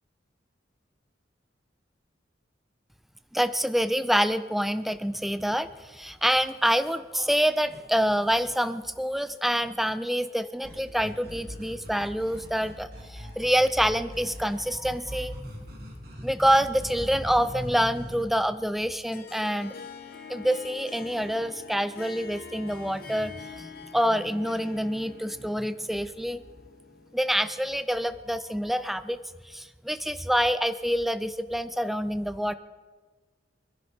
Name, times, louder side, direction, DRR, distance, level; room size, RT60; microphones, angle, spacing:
voice 1, 3.3-15.5 16.2-19.7 20.3-26.4 27.1-29.2 29.5-32.5, equal, ahead, 13 dB, 0.4 m, -27 dB
sound 1, 10.6-18.3, equal, 55° right, 2.6 m, -42 dB
Harp, 19.1-27.6, left 5 dB, 55° left, 1.4 m, -45 dB
24.5 x 11.0 x 4.3 m, 1.4 s
head